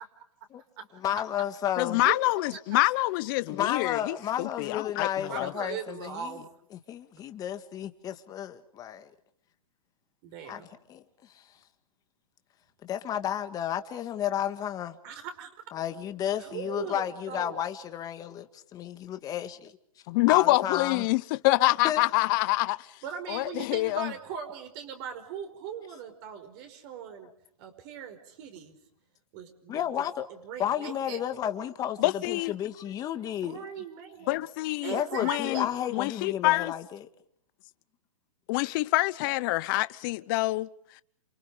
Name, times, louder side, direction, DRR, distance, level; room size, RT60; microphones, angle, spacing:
voice 1, 1.0-2.0 3.5-6.4 6.7-9.1 10.4-11.4 12.8-15.0 15.7-19.7 20.3-21.1 21.8-22.0 29.7-30.3 30.6-33.6 34.9-37.1, left 10 dB, 20° left, 1.9 m, -32 dB
voice 2, 1.8-5.5 20.1-22.8 23.3-24.1 32.0-32.5 34.3-34.9 35.2-35.7 35.9-36.7 38.5-40.7, left 20 dB, 35° left, 0.9 m, -26 dB
voice 3, 5.3-6.4 10.2-10.7 15.0-15.5 16.4-17.6 23.0-27.3 27.6-28.7 29.3-30.1 30.4-31.2 33.4-34.4 34.8-35.7, right 8 dB, 40° right, 5.3 m, -39 dB
28.5 x 28.0 x 5.1 m
hypercardioid pair, 145°, 18 cm